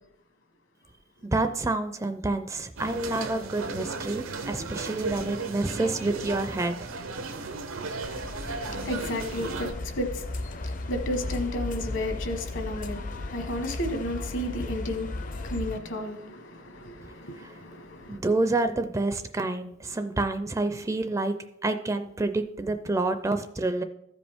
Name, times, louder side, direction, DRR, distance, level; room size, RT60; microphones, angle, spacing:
voice 1, 1.3-6.8 18.1-21.4 21.6-23.8, right 2 dB, 15° right, 0.4 m, -28 dB
sound 1, 2.8-9.7, right 3 dB, 85° right, 0.9 m, -35 dB
sound 2, 8.0-15.8, left 2 dB, 40° left, 0.5 m, -35 dB
voice 2, 8.6-18.2, left 1 dB, 65° left, 1.2 m, -33 dB
14.5 x 5.2 x 3.5 m
head